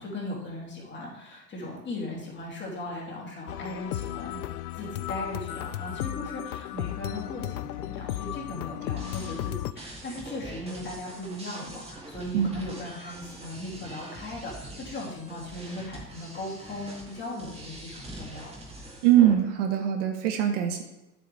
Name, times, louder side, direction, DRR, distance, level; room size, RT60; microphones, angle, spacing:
voice 1, 0.0-4.5 4.7-18.6, left 1 dB, 20° left, -3 dB, 3.0 m, -38 dB
sound 1, 3.5-9.7, left 14 dB, 65° left, 0.6 m, -34 dB
sound 2, 9.0-19.3, right 1 dB, 10° right, 2.1 m, -44 dB
voice 2, 19.0-20.8, right 11 dB, 50° right, 5 dB, 1.1 m, -22 dB
9.2 x 7.9 x 3.4 m, 0.98 s
hypercardioid pair, 110°, 49 cm